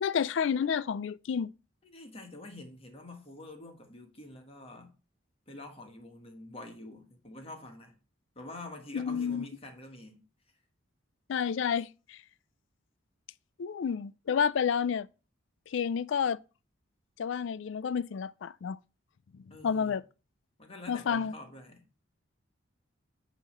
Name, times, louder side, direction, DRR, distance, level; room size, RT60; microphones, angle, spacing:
voice 1, 0.0-1.5 8.9-9.5 11.3-12.2 13.6-15.1 15.7-16.4 17.2-18.8 19.6-20.0 20.9-21.3, left 7 dB, 65° left, 0.3 m, -30 dB
voice 2, 1.8-4.9 5.5-7.9 8.3-10.2 19.5-20.0 20.6-21.8, left 2 dB, 30° left, 1.4 m, -47 dB
9.2 x 3.1 x 6.5 m
head